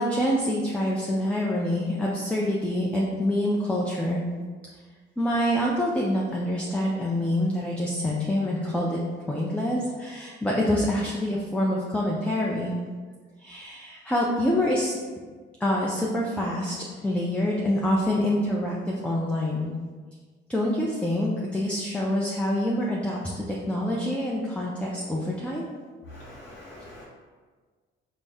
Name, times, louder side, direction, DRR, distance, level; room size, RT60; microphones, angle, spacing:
voice 1, 0.0-4.2 5.2-9.0 9.3-12.7 13.4-14.9 15.6-19.7 20.5-25.7, left 1 dB, 5° left, -3 dB, 0.4 m, -26 dB
voice 2, 26.1-27.0, left 1 dB, 75° left, -5 dB, 0.7 m, -44 dB
4.0 x 2.0 x 3.5 m, 1.5 s
cardioid pair, 90°, 20 cm